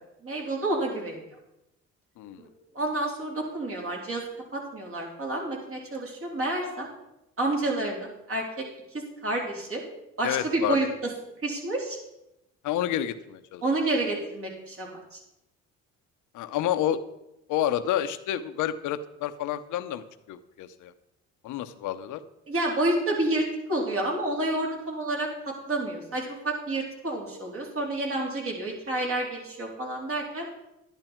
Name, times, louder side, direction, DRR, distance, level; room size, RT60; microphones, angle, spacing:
voice 1, 0.2-1.2 2.4-2.5 2.7-4.2 4.5-6.9 7.4-8.4 9.2-9.8 10.2-10.9 11.4-12.0 13.6-15.2 22.5-30.5, right 2 dB, 45° right, -1 dB, 3.8 m, -29 dB
voice 2, 10.2-10.8 12.6-13.6 16.3-17.0 17.5-20.9 21.4-22.2, left 11 dB, 80° left, 11 dB, 0.9 m, -29 dB
11.0 x 11.0 x 4.5 m, 0.90 s
cardioid pair, 105°, 30 cm